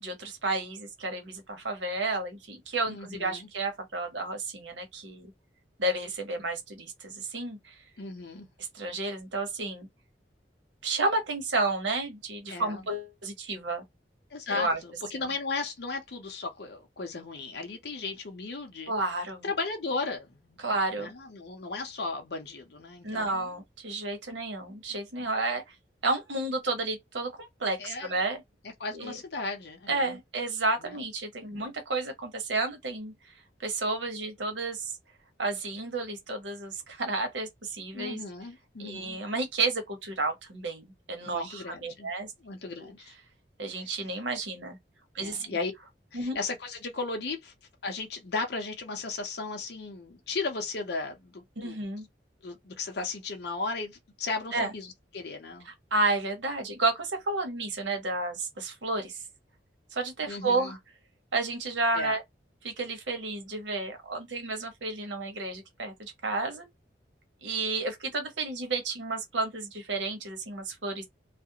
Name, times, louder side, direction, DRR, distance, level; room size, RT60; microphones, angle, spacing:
voice 1, 0.0-5.3 5.8-7.7 8.7-9.9 10.8-13.8 14.5-14.8 15.1-15.2 18.9-19.4 20.6-21.1 23.0-25.7 26.0-28.4 28.9-29.2 29.9-33.1 33.6-35.0 35.4-38.2 38.8-42.3 43.6-44.8 45.1-45.6 46.1-46.4 51.6-52.1 54.5-54.7 55.7-59.2 59.9-60.8 61.3-62.2 62.6-66.7 67.4-71.0, right 2 dB, 90° right, 0.9 m, -31 dB
voice 2, 2.9-3.5 8.0-8.5 12.5-12.9 14.3-18.9 19.4-20.6 21.0-23.5 27.8-28.1 28.8-30.2 30.8-31.0 31.5-31.7 37.9-39.2 41.2-42.1 42.4-43.1 43.7-43.9 45.2-45.7 46.1-47.5 47.8-51.8 52.4-55.7 60.3-60.8 61.9-62.2, left 3 dB, 60° left, 0.6 m, -36 dB
2.4 x 2.1 x 2.7 m
head